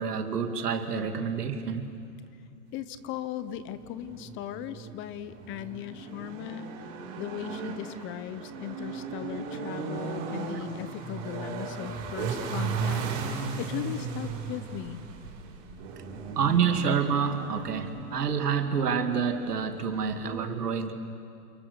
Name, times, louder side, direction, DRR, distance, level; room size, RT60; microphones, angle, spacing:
voice 1, 0.0-1.9 16.4-20.9, right 6 dB, 80° right, 7 dB, 2.6 m, -28 dB
voice 2, 2.7-6.7 7.1-13.1 13.6-15.0, left 11 dB, 25° left, 14 dB, 1.0 m, -38 dB
sound 1, 3.7-20.4, right 5 dB, 45° right, 5.9 m, -37 dB
29.5 x 29.0 x 6.8 m, 2.5 s
hypercardioid pair, 125°, 46 cm